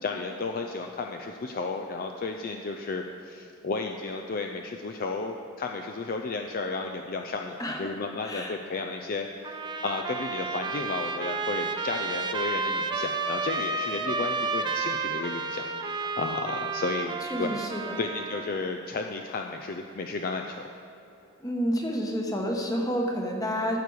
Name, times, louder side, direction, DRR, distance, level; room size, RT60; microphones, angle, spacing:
voice 1, 0.0-17.6 18.0-20.7, left 3 dB, 40° left, 4 dB, 0.4 m, -33 dB
voice 2, 7.6-8.0 8.2-8.6 17.3-18.0 21.4-23.8, equal, 15° left, 1 dB, 1.0 m, -29 dB
Trumpet, 9.4-18.6, right 4 dB, 20° right, 0.4 m, -31 dB
14.0 x 6.8 x 4.7 m, 2.9 s
head